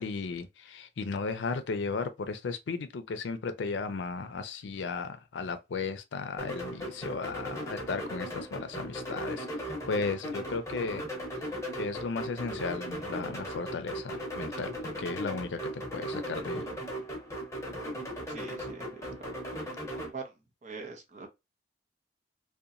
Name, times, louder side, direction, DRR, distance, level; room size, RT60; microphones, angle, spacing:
voice 1, 0.0-9.5 9.9-11.0 11.8-16.7, left 4 dB, 85° left, 0.4 m, -35 dB
sound 1, 6.4-20.1, equal, 15° left, 0.8 m, -37 dB
voice 2, 18.3-19.1 20.1-20.3 20.6-21.3, right 4 dB, 40° right, 0.6 m, -42 dB
2.8 x 2.2 x 2.5 m
head